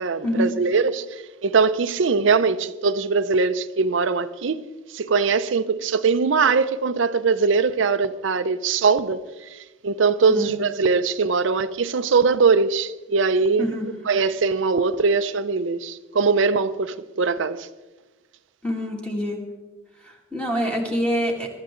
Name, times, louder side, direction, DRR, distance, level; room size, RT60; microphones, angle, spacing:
voice 1, 0.0-4.6 4.9-13.7 14.1-17.7, right 4 dB, 75° right, 0.5 m, -21 dB
voice 2, 18.6-19.4 20.1-21.5, equal, 5° left, 2.3 m, -25 dB
22.0 x 13.0 x 3.8 m
head